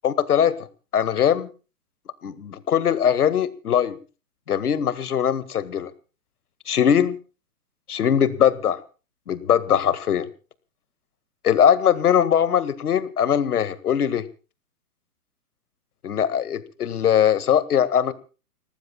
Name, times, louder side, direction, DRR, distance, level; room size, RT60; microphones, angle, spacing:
voice 1, 0.0-0.6 0.9-1.5 2.2-4.0 4.5-5.9 6.7-7.2 7.9-8.8 9.3-10.3 11.4-14.2 16.0-18.1, left 9 dB, 70° left, 15 dB, 1.9 m, -21 dB
30.0 x 18.5 x 2.3 m, 0.35 s
hypercardioid pair, 120°, 46 cm